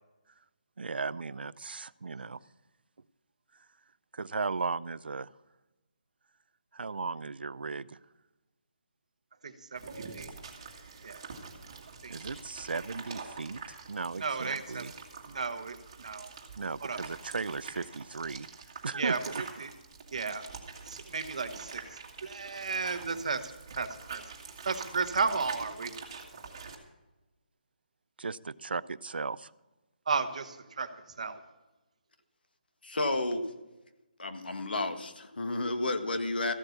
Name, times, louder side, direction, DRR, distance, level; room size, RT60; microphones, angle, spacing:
voice 1, 0.8-2.4 4.1-5.3 6.7-8.0 12.1-14.9 16.6-18.5 18.8-19.4 28.2-29.5, right 4 dB, 80° right, 19 dB, 0.5 m, -36 dB
voice 2, 9.4-10.3 11.0-11.2 12.0-12.1 14.2-14.9 15.2-16.3 16.8-17.0 18.9-19.7 20.1-20.5 20.9-24.3 24.6-25.9 30.1-30.9 31.2-31.4, right 4 dB, 45° right, 9 dB, 1.1 m, -34 dB
sound 1, 9.7-26.7, right 5 dB, 25° right, 1.8 m, -45 dB
voice 3, 32.8-33.5 34.2-36.5, left 2 dB, 75° left, 8 dB, 1.7 m, -31 dB
14.5 x 7.9 x 7.1 m, 1.1 s
hypercardioid pair, 175°, 5 cm